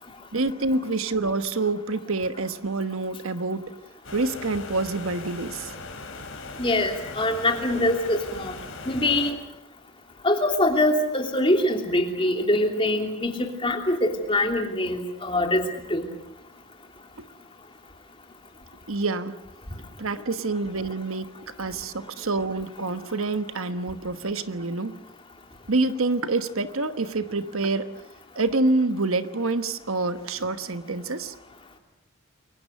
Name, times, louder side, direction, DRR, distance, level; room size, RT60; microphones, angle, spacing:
voice 1, 0.3-3.6 4.1-5.7 17.2-17.3 18.9-19.4 20.0-25.0 25.7-27.9 28.3-31.3, right 3 dB, 70° right, 11 dB, 1.2 m, -27 dB
sound 1, 4.0-9.3, left 3 dB, 60° left, 4.6 m, -39 dB
voice 2, 6.6-8.6 8.8-9.4 10.2-15.6 15.9-16.1, left 1 dB, 25° left, 4 dB, 3.0 m, -23 dB
29.0 x 23.5 x 6.6 m, 0.84 s
head